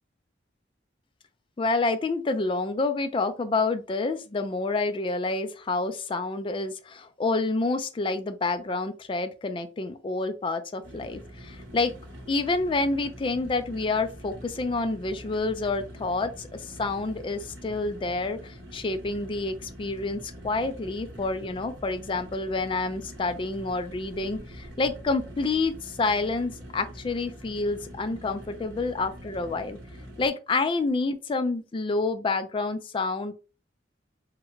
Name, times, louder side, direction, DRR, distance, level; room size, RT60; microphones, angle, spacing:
voice 1, 1.6-11.9 12.3-29.8 30.2-33.3, left 3 dB, 25° left, 0.3 m, -28 dB
sound 1, 10.8-30.3, equal, 70° right, 1.0 m, -44 dB
3.5 x 2.1 x 3.1 m
head